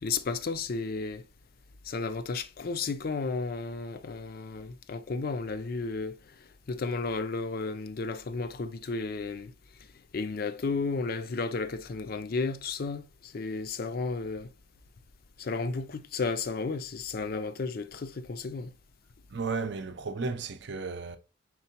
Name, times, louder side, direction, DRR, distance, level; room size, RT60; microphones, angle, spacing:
voice 1, 0.0-1.2 1.8-9.5 10.1-14.5 15.4-18.7, left 4 dB, 50° left, 0.5 m, -33 dB
voice 2, 19.3-21.2, right 4 dB, 60° right, 0.6 m, -34 dB
4.6 x 3.6 x 2.8 m
head